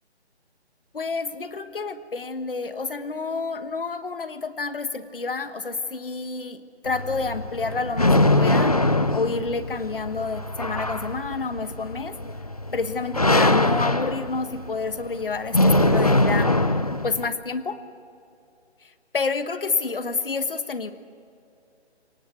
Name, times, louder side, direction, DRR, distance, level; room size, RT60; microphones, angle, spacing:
voice 1, 0.9-8.8 9.1-12.2 12.7-16.5 17.0-17.8 18.8-20.9, left 4 dB, 50° left, 11 dB, 1.4 m, -29 dB
sound 1, 6.9-17.3, left 2 dB, 35° left, 0.6 m, -22 dB
29.5 x 19.0 x 8.2 m, 2.5 s
hypercardioid pair, 180°, 34 cm